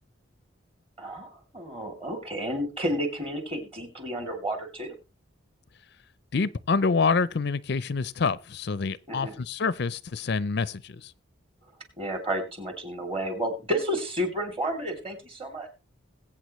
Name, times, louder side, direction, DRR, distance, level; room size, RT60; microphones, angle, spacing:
voice 1, 1.0-4.9 9.1-9.3 12.0-15.7, equal, 25° right, 2.9 m, -31 dB
voice 2, 6.3-11.1, left 4 dB, 55° left, 0.5 m, -27 dB
21.0 x 8.7 x 3.1 m
head